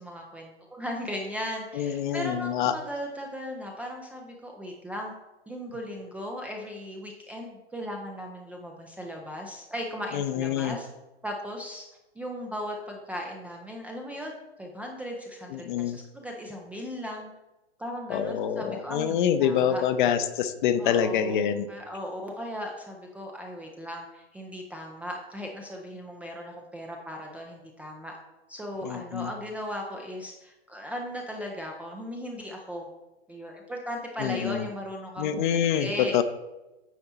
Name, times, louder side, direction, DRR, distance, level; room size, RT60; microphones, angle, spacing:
voice 1, 0.0-5.1 5.5-10.9 11.2-11.9 12.2-17.3 17.8-19.8 20.8-28.1 28.5-32.9 33.3-36.2, equal, 5° right, 0 dB, 0.4 m, -37 dB
voice 2, 1.7-2.7 10.1-10.8 15.5-16.0 18.1-21.7 28.8-29.3 34.2-34.7 35.2-36.2, left 9 dB, 45° left, 11 dB, 0.7 m, -26 dB
9.2 x 4.3 x 4.2 m, 1.0 s
hypercardioid pair, 120°, 33 cm